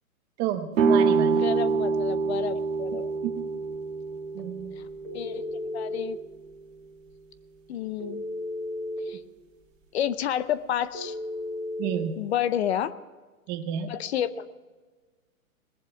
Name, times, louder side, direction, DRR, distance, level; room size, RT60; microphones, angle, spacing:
voice 1, 0.4-1.5 3.2-3.3 4.3-4.8 11.8-12.2 13.5-13.9, right 9 dB, 25° right, 9 dB, 0.8 m, -30 dB
sound 1, 0.7-6.5, right 5 dB, 65° right, 2.2 m, -26 dB
voice 2, 1.4-3.1 5.1-6.2 7.7-8.2 9.1-9.2 9.9-11.1 12.2-12.9 13.9-14.5, left 10 dB, 50° left, 14 dB, 0.7 m, -30 dB
Telephone, 5.0-6.1 8.0-9.0 10.9-12.0, left 1 dB, ahead, 3.1 m, -34 dB
20.0 x 7.5 x 5.7 m, 1.3 s
hypercardioid pair, 140°, 43 cm